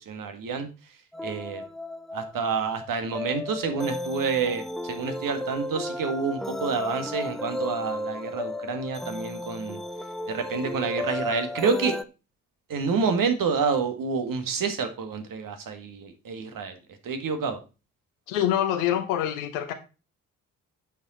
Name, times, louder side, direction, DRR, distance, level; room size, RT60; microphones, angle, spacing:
voice 1, 0.1-0.7 1.2-1.6 2.1-9.8 10.3-11.9 12.7-16.7 17.0-17.6, right 5 dB, 55° right, 1.8 m, -28 dB
sound 1, 1.1-12.0, left 1 dB, ahead, 0.5 m, -34 dB
voice 2, 18.3-19.7, left 11 dB, 80° left, 0.9 m, -25 dB
8.2 x 6.4 x 4.2 m
hypercardioid pair, 40°, 40 cm